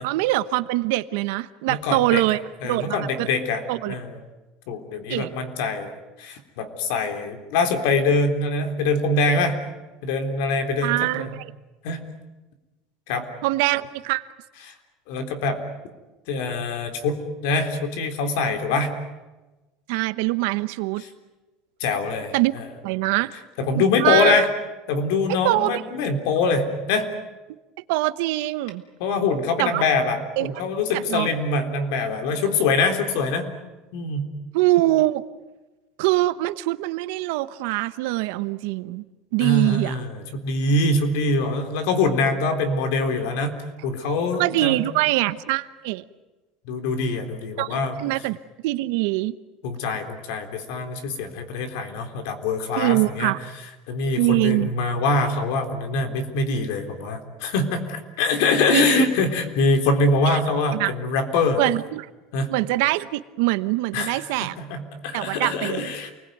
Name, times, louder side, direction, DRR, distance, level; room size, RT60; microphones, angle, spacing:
voice 1, 0.0-3.3 3.7-4.0 5.1-5.3 10.8-11.5 13.4-14.3 19.9-21.0 22.3-22.5 22.8-23.3 24.0-24.4 25.3-25.8 27.9-28.8 29.6-29.8 30.4-30.5 30.9-31.3 34.5-35.2 36.0-39.1 39.3-40.0 44.3-46.0 47.6-48.4 48.6-49.3 52.8-53.4 54.2-54.7 58.7-59.0 60.3-60.4 60.7-60.9 61.6-62.1 62.5-64.6 65.1-65.9, right 19 dB, 65° right, 14 dB, 1.0 m, -23 dB
voice 2, 1.7-2.2 2.6-3.6 3.9-4.2 4.7-5.9 6.2-9.5 10.0-11.3 11.8-12.0 13.1-13.2 15.1-15.6 16.3-17.2 17.4-18.9 21.8-22.7 23.6-24.5 24.9-27.1 29.0-33.5 33.9-34.3 39.4-43.5 43.8-44.8 46.7-48.0 49.6-53.3 53.9-61.6 62.3-62.5 63.9-66.1, left 3 dB, 65° left, 7 dB, 3.7 m, -24 dB
28.5 x 20.5 x 9.5 m, 1.1 s
cardioid pair, 175°, 0 cm